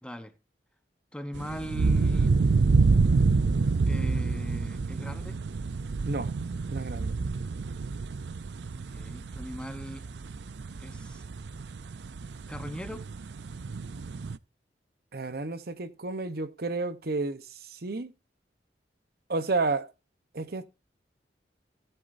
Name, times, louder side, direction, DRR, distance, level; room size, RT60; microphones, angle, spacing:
voice 1, 0.0-0.3 1.1-2.3 3.9-5.4 8.7-10.1 10.8-11.2 12.5-13.1, equal, 5° left, 0.8 m, -40 dB
sound 1, 1.3-14.4, right 4 dB, 75° right, 0.5 m, -28 dB
voice 2, 6.7-7.2 15.1-18.1 19.3-19.9 20.3-20.6, right 3 dB, 60° right, 0.9 m, -31 dB
17.5 x 8.1 x 2.6 m
head